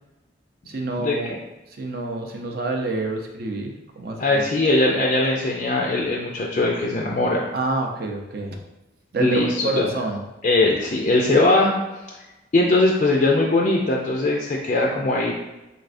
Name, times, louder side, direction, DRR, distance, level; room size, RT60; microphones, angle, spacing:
voice 1, 0.7-1.3 1.8-4.4 7.5-8.6 9.1-10.2, right 2 dB, 55° right, 2 dB, 0.5 m, -27 dB
voice 2, 4.2-7.4 9.2-9.9 10.4-11.7 12.5-15.3, left 2 dB, 40° left, -1 dB, 0.3 m, -20 dB
4.1 x 3.3 x 2.5 m, 1.0 s
head